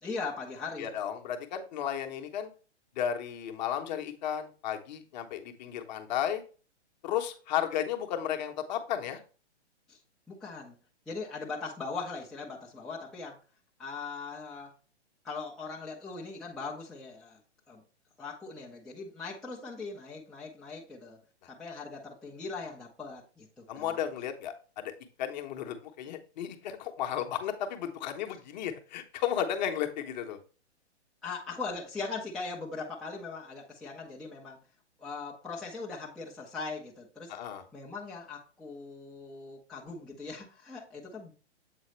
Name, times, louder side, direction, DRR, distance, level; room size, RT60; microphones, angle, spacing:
voice 1, 0.0-0.9 9.9-10.0 10.3-10.7 11.1-13.4 13.8-14.7 15.2-17.4 17.7-17.8 18.2-21.2 21.5-24.0 31.2-34.6 35.0-37.3 37.7-41.3, left 4 dB, ahead, -6 dB, 0.5 m, -40 dB
voice 2, 0.8-2.5 3.0-6.4 7.0-9.2 21.4-21.5 23.7-24.9 25.2-30.4 37.3-37.6, left 9 dB, 40° left, 5 dB, 0.9 m, -34 dB
7.6 x 3.9 x 3.1 m, 0.37 s
hypercardioid pair, 135°, 35 cm